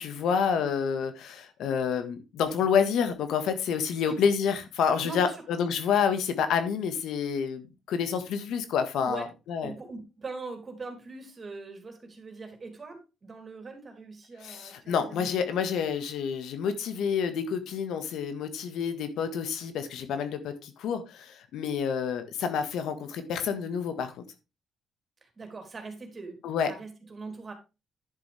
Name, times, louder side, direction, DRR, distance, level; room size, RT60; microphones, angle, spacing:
voice 1, 0.0-9.7 14.4-24.1 26.4-26.7, left 7 dB, 80° left, 9 dB, 1.6 m, -28 dB
voice 2, 5.0-5.4 9.0-9.2 9.6-15.3 25.2-26.4 26.7-27.5, right 3 dB, 30° right, 5 dB, 3.2 m, -41 dB
10.5 x 7.1 x 3.4 m, 0.27 s
cardioid pair, 115°, 0 cm